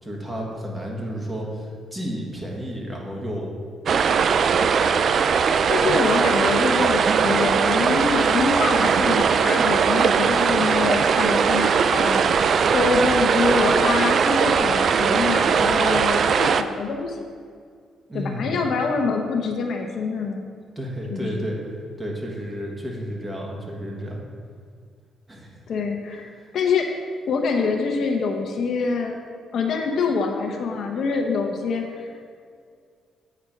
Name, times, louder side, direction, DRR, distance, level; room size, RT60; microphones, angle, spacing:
voice 1, 0.0-3.6 3.9-4.1 18.1-18.6 20.8-21.6 22.0-24.2 25.3-25.6 26.4-26.5, equal, 20° right, -1 dB, 1.7 m, -32 dB
sound 1, 3.9-16.6, right 6 dB, 55° right, 0.3 m, -20 dB
voice 2, 5.7-17.2 18.1-20.4 21.1-21.4 25.7-26.9 27.3-29.2 29.5-32.2, left 4 dB, 65° left, 3 dB, 0.9 m, -25 dB
8.5 x 4.3 x 5.2 m, 2.1 s
cardioid pair, 90°, 0 cm